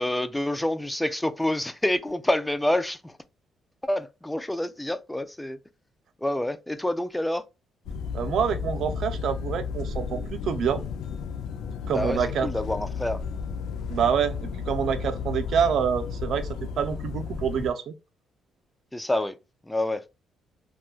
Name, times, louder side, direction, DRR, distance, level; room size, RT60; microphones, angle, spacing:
voice 1, 0.0-3.2 3.8-5.6 6.2-7.4 11.9-13.2 18.9-19.4 19.7-20.0, left 1 dB, 5° left, 0.3 m, -27 dB
sound 1, 7.9-17.7, left 6 dB, 85° left, 0.4 m, -33 dB
voice 2, 8.1-10.8 11.9-12.5 13.9-16.5 16.8-17.9, right 7 dB, 70° right, 0.5 m, -26 dB
3.0 x 2.3 x 2.3 m
cardioid pair, 90°, 0 cm